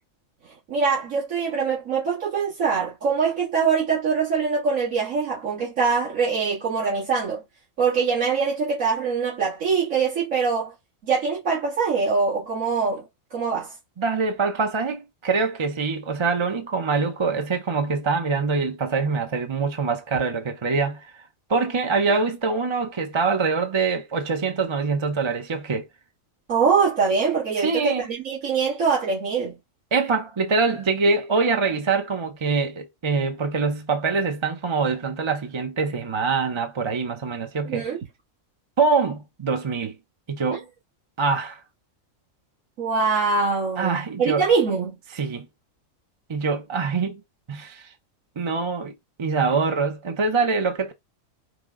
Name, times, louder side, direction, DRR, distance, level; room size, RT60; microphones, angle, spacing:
voice 1, 0.7-7.4 7.8-10.7 11.0-13.0 13.3-13.7 26.5-29.5 37.7-38.0 42.8-44.9, right 5 dB, 75° right, 2.4 m, -23 dB
voice 2, 14.0-21.2 21.5-25.9 27.6-28.1 29.9-37.9 38.8-40.0 40.3-40.6 41.2-41.6 43.8-44.5 45.1-45.5 46.3-47.2 47.5-47.9 48.4-50.9, right 4 dB, 35° right, 0.4 m, -24 dB
5.0 x 2.4 x 3.6 m
omnidirectional pair, 1.4 m